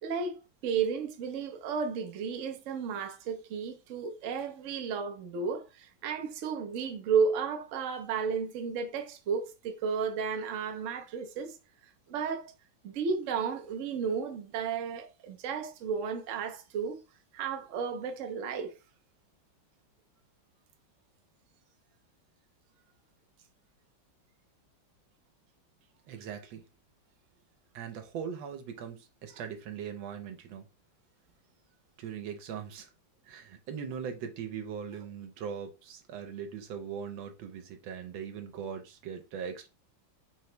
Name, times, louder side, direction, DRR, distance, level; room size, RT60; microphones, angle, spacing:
voice 1, 0.0-11.6 12.1-12.5 12.8-17.0 17.3-18.8, right 6 dB, 65° right, 0.7 m, -33 dB
voice 2, 26.1-26.6 27.7-30.7 32.0-32.9 33.2-39.7, right 7 dB, 85° right, 1.5 m, -40 dB
3.9 x 2.9 x 3.2 m
omnidirectional pair, 2.1 m